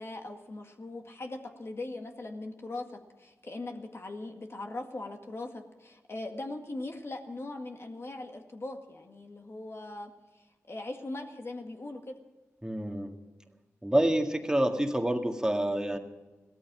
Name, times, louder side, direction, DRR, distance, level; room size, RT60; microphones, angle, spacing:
voice 1, 0.0-12.2, left 2 dB, 45° left, 4 dB, 1.9 m, -40 dB
voice 2, 12.6-13.1 13.8-16.0, right 1 dB, 10° right, 4 dB, 1.9 m, -27 dB
16.5 x 13.5 x 6.2 m, 1.2 s
cardioid pair, 45°, 6 cm